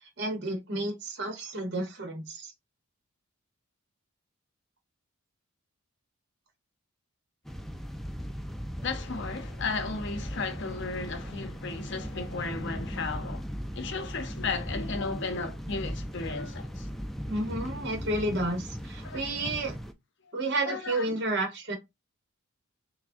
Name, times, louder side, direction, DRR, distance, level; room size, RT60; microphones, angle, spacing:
voice 1, 0.2-2.5 17.3-19.8 20.3-21.8, right 2 dB, 50° right, 0.9 m, -31 dB
sound 1, 7.4-19.9, equal, ahead, 0.3 m, -38 dB
voice 2, 8.8-13.4 13.7-16.9 19.0-19.5 20.7-21.2, left 4 dB, 55° left, 0.6 m, -35 dB
5.8 x 2.0 x 2.5 m
head